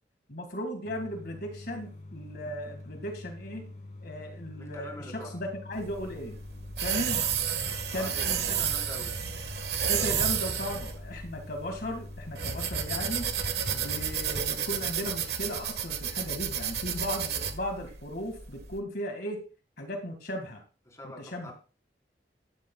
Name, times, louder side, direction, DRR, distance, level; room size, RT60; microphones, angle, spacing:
voice 1, 0.3-3.7 4.0-6.4 6.8-7.3 7.9-8.6 9.9-13.3 13.7-19.4 19.8-20.6 21.2-21.5, equal, 60° left, 5 dB, 2.0 m, -36 dB
sound 1, 0.8-14.3, left 2 dB, 45° left, 2.9 m, -46 dB
voice 2, 4.5-5.4 7.7-9.2 20.9-21.5, left 1 dB, 15° left, -1 dB, 4.3 m, -45 dB
sound 2, 5.8-18.7, right 7 dB, 65° right, 1.5 m, -31 dB
15.5 x 12.0 x 2.3 m, 0.35 s
head